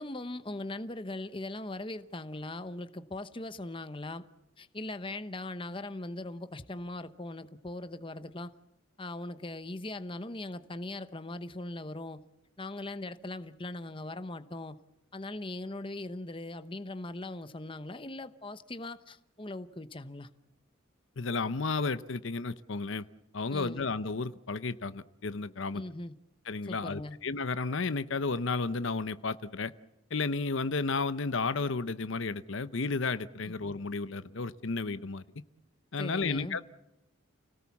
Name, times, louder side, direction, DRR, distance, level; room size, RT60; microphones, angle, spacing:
voice 1, 0.0-4.3 4.6-8.5 9.0-12.2 12.6-14.8 15.1-20.3 23.5-23.9 25.7-26.1 26.6-27.2 33.4-33.5 36.0-36.6, left 2 dB, 25° left, 0.9 m, -40 dB
voice 2, 21.2-23.1 23.3-25.8 26.5-29.7 30.1-35.2 35.9-36.6, left 4 dB, 65° left, 0.8 m, -32 dB
29.5 x 18.5 x 7.2 m
head